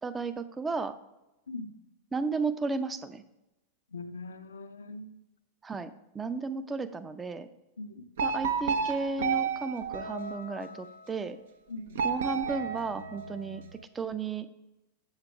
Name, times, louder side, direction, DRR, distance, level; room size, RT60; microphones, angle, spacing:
voice 1, 0.0-0.9 2.1-3.2 5.6-7.5 8.2-11.4 12.0-14.5, right 4 dB, 15° right, 11 dB, 0.5 m, -34 dB
voice 2, 3.9-5.2 7.8-8.0 11.7-12.0, left 3 dB, 70° left, 9 dB, 0.6 m, -41 dB
sound 1, 8.2-10.9 11.9-13.7, right 6 dB, 60° right, 0.7 m, -32 dB
8.0 x 7.4 x 3.4 m, 0.95 s
figure-of-eight pair, 90°, 0 cm